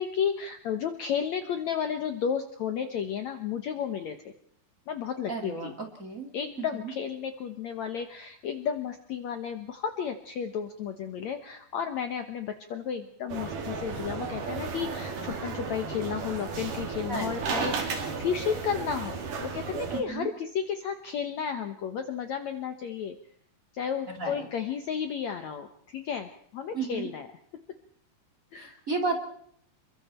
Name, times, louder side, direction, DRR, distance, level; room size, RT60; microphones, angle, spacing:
voice 1, 0.0-4.2 4.9-5.7 6.3-23.2 23.7-27.3 28.5-28.8, left 7 dB, 65° left, 7 dB, 2.0 m, -33 dB
voice 2, 5.3-5.7 6.0-6.3 6.7-6.9 17.1-17.5 19.9-20.3 24.1-24.5 26.7-27.1 28.6-29.2, right 3 dB, 25° right, 3 dB, 2.7 m, -33 dB
sound 1, 13.3-20.0, right 5 dB, 60° right, 4.1 m, -34 dB
29.0 x 23.0 x 4.4 m, 0.64 s
omnidirectional pair, 4.4 m